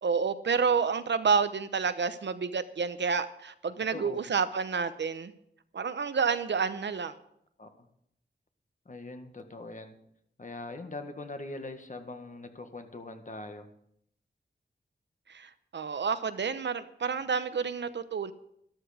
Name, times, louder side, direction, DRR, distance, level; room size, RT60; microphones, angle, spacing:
voice 1, 0.0-5.3 5.7-7.1 15.3-18.3, right 5 dB, 70° right, 12 dB, 0.8 m, -29 dB
voice 2, 3.9-4.2 7.6-7.9 8.8-10.0 10.4-13.7, left 2 dB, 45° left, 6 dB, 1.5 m, -42 dB
12.5 x 12.0 x 5.0 m, 0.74 s
wide cardioid pair, 80°, 19 cm